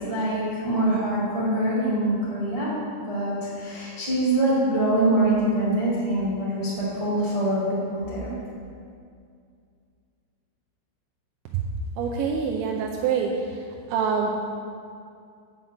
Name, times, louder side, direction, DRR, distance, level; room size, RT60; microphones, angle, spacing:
voice 1, 0.0-2.7 3.0-8.3, right 1 dB, 15° right, -8 dB, 1.3 m, -24 dB
voice 2, 12.0-13.6 13.9-14.5, right 6 dB, 85° right, 0 dB, 2.9 m, -25 dB
7.9 x 5.7 x 7.8 m, 2.3 s
omnidirectional pair, 5.2 m